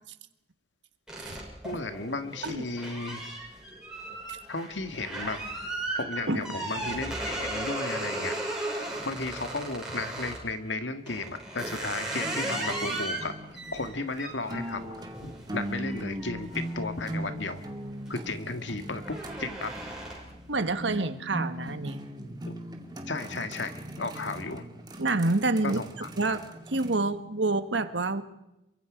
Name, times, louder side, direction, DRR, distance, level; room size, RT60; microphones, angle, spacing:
sound 1, 1.1-10.5 11.1-17.5 17.9-18.3 18.6-20.4, right 2 dB, 5° right, 6.3 m, -36 dB
voice 1, 1.6-3.2 4.5-5.7 5.9-8.4 8.7-8.8 9.0-13.3 13.7-17.6 18.1-19.7 22.5-22.6 23.1-23.7 24.0-24.6 25.6-26.1, left 3 dB, 85° left, 8 dB, 2.1 m, -34 dB
sound 2, 12.2-27.0, equal, 20° right, 2.2 m, -39 dB
voice 2, 20.5-22.0 25.0-25.8 26.2-28.2, right 3 dB, 90° right, 10 dB, 1.6 m, -28 dB
27.5 x 24.0 x 5.2 m, 0.88 s
head